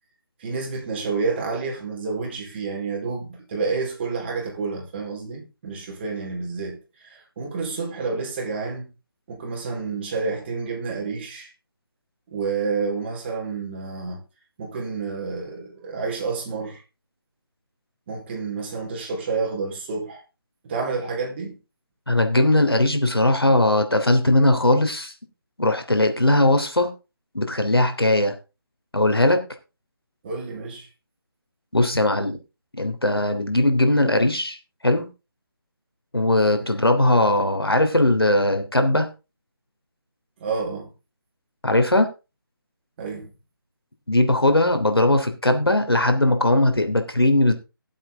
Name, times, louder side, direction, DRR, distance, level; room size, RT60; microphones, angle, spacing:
voice 1, 0.4-6.8 7.0-8.9 9.3-11.5 12.3-14.2 14.6-16.8 18.1-20.2 20.6-21.6 30.2-30.9 40.4-40.9 43.0-43.3, right 4 dB, 30° right, 4.3 m, -29 dB
voice 2, 22.1-25.1 25.6-26.9 27.3-28.3 28.9-29.4 31.7-32.4 32.8-34.6 34.8-35.1 36.1-39.1 41.6-42.1 44.1-47.5, left 1 dB, 90° left, 3.2 m, -19 dB
17.5 x 7.8 x 3.8 m
figure-of-eight pair, 155°, 12 cm